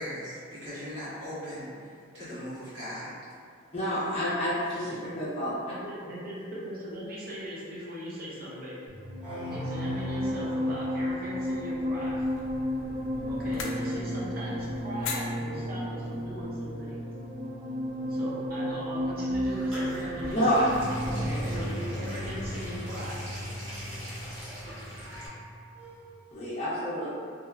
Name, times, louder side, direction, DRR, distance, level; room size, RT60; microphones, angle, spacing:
voice 1, 0.0-3.1 4.7-4.9, equal, 70° right, -12 dB, 1.2 m, -39 dB
voice 2, 3.7-5.5 20.3-20.6 26.3-27.1, equal, 30° left, -11 dB, 0.5 m, -28 dB
voice 3, 5.6-8.8 9.5-12.3 13.3-17.0 18.1-20.7 21.2-23.2, equal, 50° right, -7 dB, 0.6 m, -39 dB
sound 1, 8.9-25.5 25.8-26.1, equal, 25° right, 0.9 m, -33 dB
sound 2, 11.7-17.1, left 4 dB, 85° left, 0.3 m, -42 dB
sound 3, 19.0-25.3, equal, 85° right, 0.8 m, -41 dB
2.8 x 2.1 x 2.3 m, 2.2 s
head